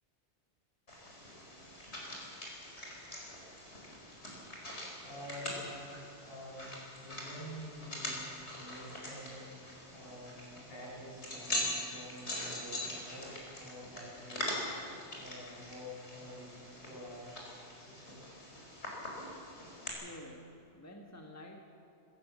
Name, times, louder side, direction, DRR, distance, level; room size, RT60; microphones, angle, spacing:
sound 1, 0.9-19.9, left 1 dB, 70° left, 5.0 m, -43 dB
voice 1, 5.0-5.8 6.1-17.4 17.8-18.2, equal, 55° left, -5 dB, 7.4 m, -48 dB
voice 2, 19.9-21.6, left 1 dB, 15° left, 2 dB, 1.4 m, -50 dB
25.0 x 17.0 x 7.3 m, 2.8 s
omnidirectional pair, 1.2 m